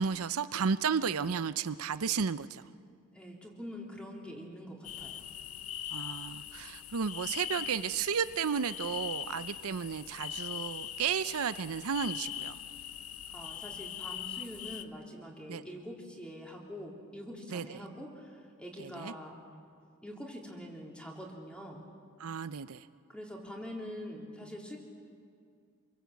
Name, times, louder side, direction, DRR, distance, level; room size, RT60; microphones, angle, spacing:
voice 1, 0.0-2.6 5.9-12.6 15.5-15.6 17.5-17.8 18.8-19.1 22.2-22.9, right 6 dB, 75° right, 13 dB, 0.6 m, -33 dB
voice 2, 3.1-5.3 13.3-19.4 20.0-21.8 23.1-24.8, equal, 5° left, -1 dB, 3.8 m, -44 dB
sound 1, 4.8-14.8, left 11 dB, 80° left, 1.0 m, -41 dB
27.5 x 23.0 x 8.4 m, 2.2 s
head